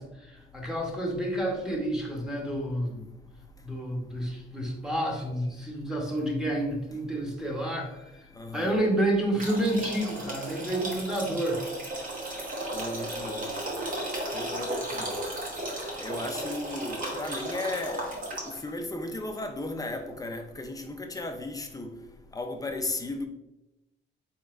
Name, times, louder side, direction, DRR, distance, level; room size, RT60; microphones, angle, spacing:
voice 1, 0.0-3.0 3.6-8.0 8.5-11.6, right 1 dB, 5° right, 0.9 m, -29 dB
voice 2, 8.4-8.7 12.7-13.5 14.3-15.2 16.0-21.9 22.3-23.3, left 2 dB, 20° left, 0.5 m, -35 dB
sound 1, 9.4-18.7, right 1 dB, 45° right, 1.3 m, -35 dB
3.9 x 3.7 x 2.5 m
cardioid pair, 90°, 20 cm